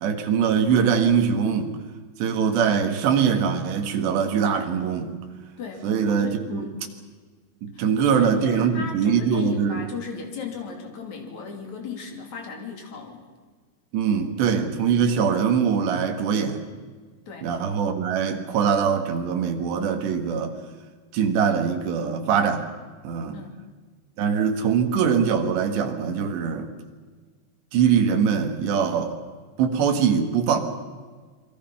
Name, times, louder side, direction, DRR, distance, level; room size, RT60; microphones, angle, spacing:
voice 1, 0.0-1.8 2.2-5.1 5.8-6.7 7.6-9.8 13.9-16.6 17.4-20.6 21.1-22.7 23.0-23.4 24.2-26.7 27.7-29.2 29.6-30.6, right 7 dB, 70° right, 5 dB, 3.9 m, -22 dB
voice 2, 5.6-6.8 7.7-13.3 17.3-17.5 23.3-23.6, left 5 dB, 40° left, 2 dB, 3.9 m, -36 dB
28.0 x 22.5 x 5.8 m, 1.5 s
omnidirectional pair, 5.4 m